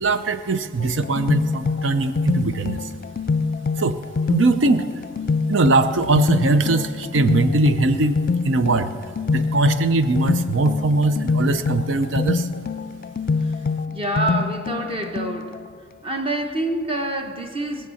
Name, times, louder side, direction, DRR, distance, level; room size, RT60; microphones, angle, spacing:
voice 1, 0.0-2.9 3.8-4.0 4.3-4.9 5.5-8.9 9.3-12.5, right 3 dB, 75° right, 0.6 m, -21 dB
sound 1, 0.8-15.7, left 4 dB, 45° left, 0.4 m, -25 dB
voice 2, 13.9-15.6 16.0-17.9, right 1 dB, 30° right, 1.1 m, -26 dB
20.0 x 7.3 x 7.0 m
head